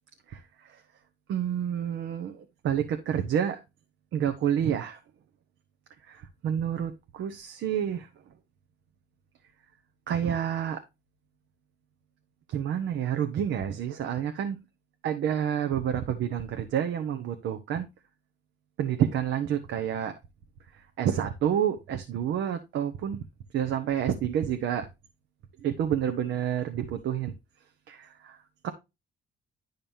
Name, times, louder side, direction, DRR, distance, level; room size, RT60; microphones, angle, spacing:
voice 1, 1.3-3.6 4.1-5.0 6.1-8.1 10.1-10.8 12.5-14.6 15.0-17.9 18.8-20.1 21.0-23.2 23.5-24.9 25.6-27.3 27.9-28.4 28.6-28.7, right 9 dB, 80° right, 6 dB, 1.0 m, -29 dB
10.5 x 5.4 x 2.6 m, 0.24 s
cardioid pair, 90°, 20 cm